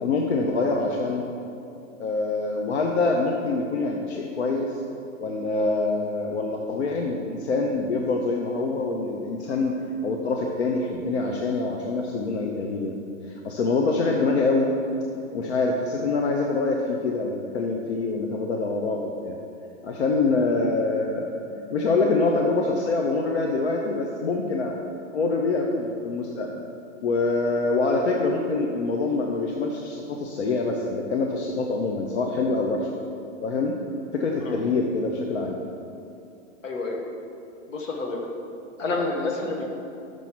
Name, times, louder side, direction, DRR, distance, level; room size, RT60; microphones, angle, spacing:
voice 1, 0.0-1.2 2.0-4.7 5.2-12.9 13.3-14.7 15.3-19.4 19.8-24.8 25.1-26.6 27.0-32.9 33.4-33.7 34.1-35.6, left 3 dB, 55° left, 1 dB, 0.7 m, -25 dB
voice 2, 36.6-37.0 37.7-38.2 38.8-39.7, left 3 dB, 70° left, 1 dB, 1.4 m, -28 dB
6.2 x 5.3 x 5.9 m, 2.7 s
hypercardioid pair, 175°, 40 cm